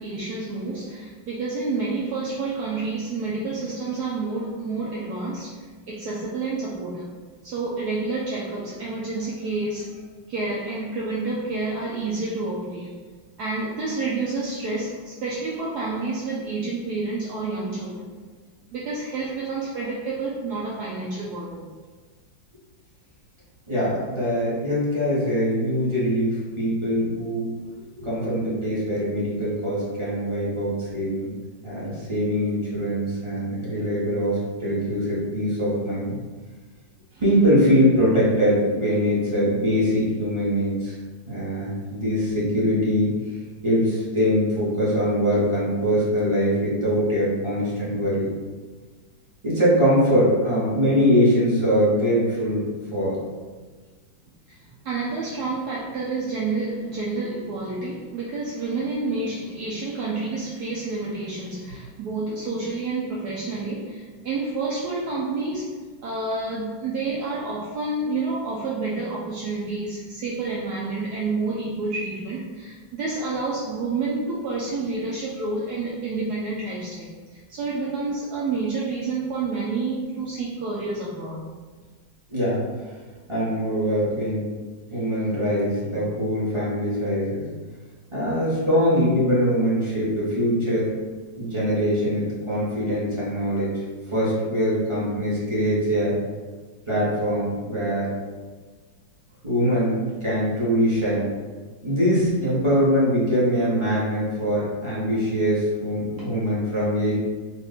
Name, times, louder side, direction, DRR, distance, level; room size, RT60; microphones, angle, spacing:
voice 1, 0.0-7.1 7.4-10.0 10.3-12.9 13.4-18.0 18.7-21.7 37.1-37.2 54.5-81.4, right 3 dB, 70° right, -5 dB, 1.0 m, -29 dB
voice 2, 23.7-27.5 28.0-31.3 31.6-36.2 37.2-40.9 41.3-43.1 43.6-48.3 49.4-52.7 52.9-53.2 82.3-82.6 83.3-84.5 84.9-87.4 88.1-90.9 91.4-93.7 94.1-96.1 96.9-98.1 99.4-101.2 101.8-107.1, equal, 20° right, -9 dB, 0.9 m, -22 dB
3.5 x 2.5 x 4.0 m, 1.4 s
omnidirectional pair, 2.0 m